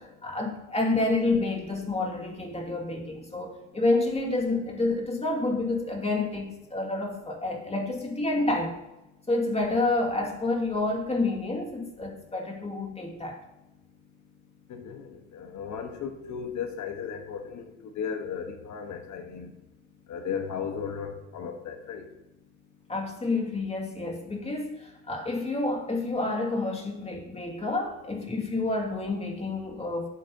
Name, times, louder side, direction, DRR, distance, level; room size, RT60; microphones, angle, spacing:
voice 1, 0.0-8.8 9.3-13.4 22.9-30.1, left 2 dB, 20° left, 2.2 m, -29 dB
voice 2, 14.7-19.5 20.1-22.1, left 7 dB, 70° left, 1.3 m, -35 dB
11.5 x 8.4 x 2.9 m
cardioid pair, 90°, 30 cm